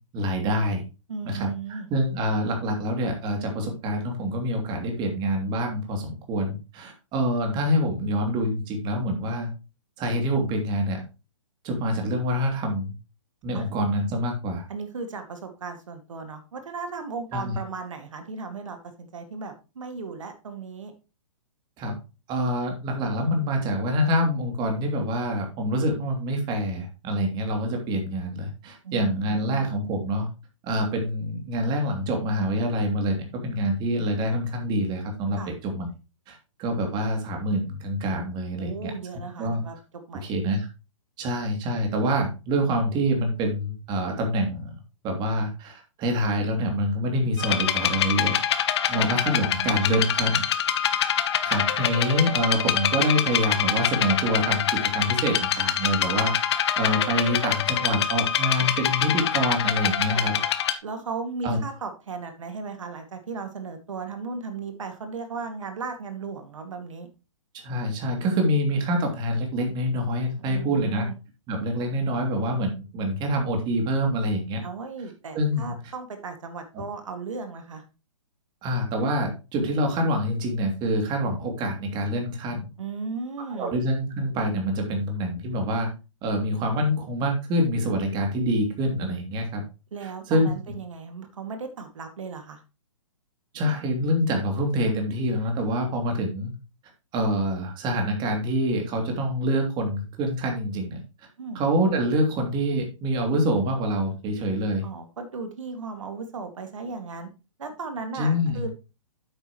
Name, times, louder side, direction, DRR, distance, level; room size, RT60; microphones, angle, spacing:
voice 1, 0.1-0.8 1.2-9.5 10.0-11.0 11.6-12.9 13.4-14.6 17.3-17.6 21.8-22.0 22.3-30.3 30.6-35.9 36.3-38.9 39.4-39.6 40.2-40.7 41.2-44.7 45.0-48.4 48.9-50.4 51.4-60.4 61.4-61.6 67.5-71.1 71.5-74.6 75.3-75.7 78.6-82.7 83.5-85.9 86.2-89.6 90.0-90.5 93.5-96.5 97.1-101.0 101.5-104.8 108.1-108.7, equal, 25° right, 2 dB, 2.9 m, -26 dB
voice 2, 1.1-1.9 13.5-13.6 14.7-20.9 28.8-29.6 35.4-35.5 38.6-40.3 48.9-49.8 60.1-60.5 60.8-67.1 70.4-71.1 74.6-77.8 82.8-83.7 89.9-92.6 101.4-101.6 104.8-107.3 107.6-108.7, right 4 dB, 70° right, 6 dB, 2.2 m, -36 dB
sound 1, 47.4-60.7, left 10 dB, 55° left, 1.1 m, -25 dB
9.8 x 8.2 x 3.1 m, 0.29 s
hypercardioid pair, 130°, 17 cm